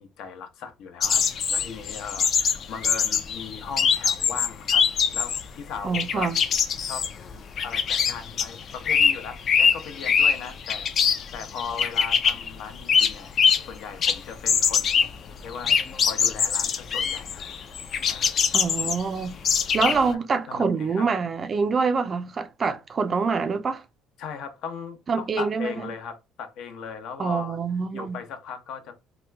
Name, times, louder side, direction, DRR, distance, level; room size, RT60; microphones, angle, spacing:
voice 1, 0.0-4.8 5.1-6.3 6.9-7.1 7.6-13.3 13.7-15.1 15.4-15.7 16.0-17.4 18.1-18.6 19.8-20.2 20.5-21.1 24.2-27.6 27.9-28.9, left 6 dB, 65° left, 0.8 m, -38 dB
sound 1, 1.0-5.5 5.7-13.7 14.0-20.1, left 6 dB, 40° left, 0.4 m, -23 dB
voice 2, 5.8-6.4 18.5-19.4 19.7-23.8 25.1-25.9 27.2-28.2, right 5 dB, 30° right, 0.4 m, -26 dB
2.9 x 2.2 x 3.3 m
cardioid pair, 145°, 0 cm